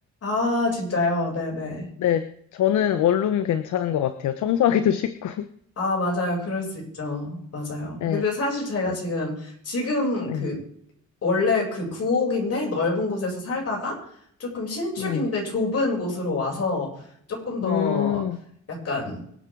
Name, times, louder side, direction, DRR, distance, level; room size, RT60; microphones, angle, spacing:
voice 1, 0.2-1.9 5.8-10.6 11.2-14.0 14.4-16.9 17.3-18.3 18.7-19.2, left 3 dB, 55° left, -1 dB, 7.6 m, -26 dB
voice 2, 2.0-5.5 8.0-8.2 8.9-9.0 10.3-10.5 15.0-15.3 17.6-18.4, left 10 dB, 75° left, 10 dB, 1.0 m, -24 dB
24.5 x 9.4 x 3.9 m, 0.67 s
cardioid pair, 90°, 30 cm